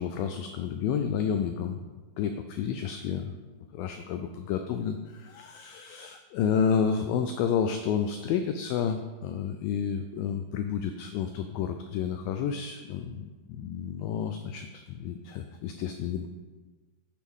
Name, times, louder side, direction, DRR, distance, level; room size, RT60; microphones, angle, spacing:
voice 1, 0.0-1.8 2.2-3.3 3.7-16.3, left 7 dB, 85° left, 7 dB, 2.0 m, -30 dB
10.0 x 8.0 x 3.7 m, 1.3 s
omnidirectional pair, 4.6 m